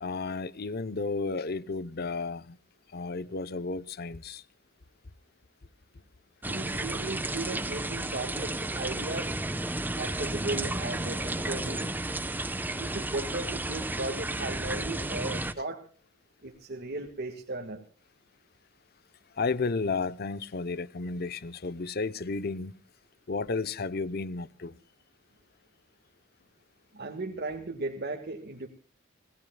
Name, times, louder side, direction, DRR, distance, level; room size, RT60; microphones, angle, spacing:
voice 1, 0.0-2.6 2.9-4.4 19.4-22.8 23.3-24.8, left 4 dB, 50° left, 0.7 m, -32 dB
sound 1, 6.4-15.5, right 2 dB, 10° right, 0.8 m, -32 dB
voice 2, 6.5-9.4 10.0-11.9 12.7-15.8 16.4-17.8 26.9-28.7, right 2 dB, 55° right, 1.6 m, -36 dB
27.0 x 18.0 x 2.2 m
head